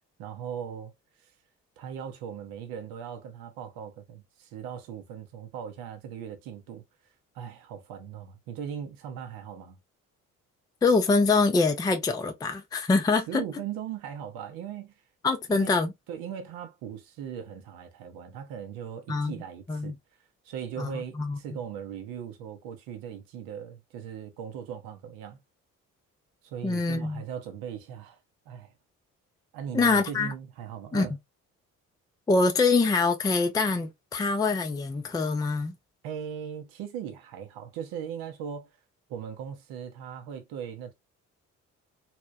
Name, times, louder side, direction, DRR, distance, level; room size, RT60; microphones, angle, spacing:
voice 1, 0.2-0.9 1.8-6.8 7.3-9.8 13.3-14.9 15.5-15.7 16.1-20.0 20.4-25.4 26.4-28.2 28.5-28.7 29.5-31.1 36.0-38.7 39.1-40.9, right 8 dB, 55° right, 0.7 m, -39 dB
voice 2, 10.8-13.4 15.2-15.9 19.1-19.3 19.7-19.9 20.8-21.4 26.6-27.2 29.7-30.3 30.9-31.1 32.3-35.7, left 3 dB, 10° left, 0.5 m, -24 dB
2.7 x 2.1 x 2.3 m
figure-of-eight pair, 45°, 42 cm